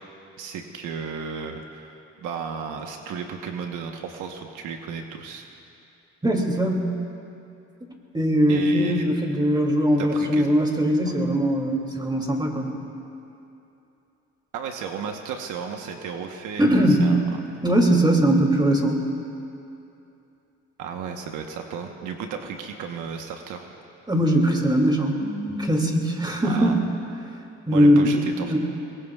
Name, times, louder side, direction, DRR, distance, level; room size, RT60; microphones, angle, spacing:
voice 1, 0.4-5.5 8.5-9.1 10.0-10.5 11.1-11.2 14.5-17.3 20.8-23.7 26.4-26.8 27.7-28.6, right 6 dB, 85° right, 3 dB, 1.2 m, -34 dB
voice 2, 6.2-6.8 8.1-12.7 16.6-17.1 17.6-19.0 24.1-26.7 27.7-28.6, equal, 15° right, 1 dB, 2.6 m, -20 dB
24.5 x 21.5 x 2.4 m, 2.8 s
cardioid pair, 90°, 30 cm